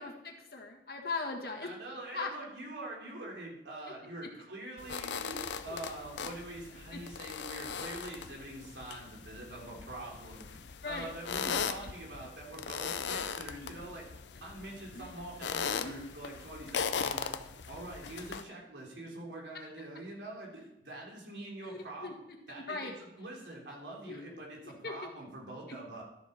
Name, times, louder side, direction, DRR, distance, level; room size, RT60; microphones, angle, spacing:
voice 1, 0.0-1.7 2.1-2.3 5.7-5.8 10.8-11.1 11.4-11.5 14.9-15.1 15.7-16.1 21.6-22.1 22.5-22.9 24.0-24.2 24.8-25.1 25.7-25.8, left 3 dB, 60° left, 1 dB, 1.6 m, -39 dB
voice 2, 1.6-10.6 10.8-17.3 17.7-22.1 22.5-26.0, right 1 dB, 90° right, -2 dB, 3.3 m, -45 dB
sound 1, 4.8-18.4, left 6 dB, 85° left, 0.6 m, -39 dB
13.0 x 7.1 x 4.3 m, 0.86 s
head